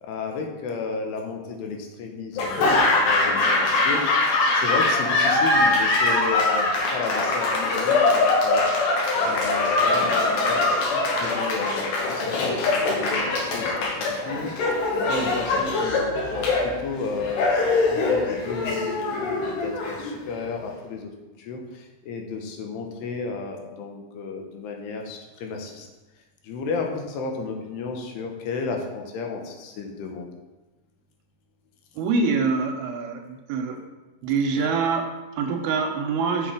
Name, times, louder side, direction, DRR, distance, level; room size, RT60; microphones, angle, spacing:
voice 1, 0.0-4.0 4.5-8.6 9.2-14.5 15.1-21.1 21.4-25.9 26.4-30.3, left 4 dB, 90° left, 2 dB, 3.0 m, -33 dB
Laughter / Applause, 2.4-20.4, left 3 dB, 70° left, 2.4 m, -22 dB
voice 2, 32.0-33.8 34.2-36.5, right 4 dB, 80° right, 4 dB, 2.3 m, -25 dB
6.2 x 5.9 x 4.9 m, 1.1 s
omnidirectional pair, 4.7 m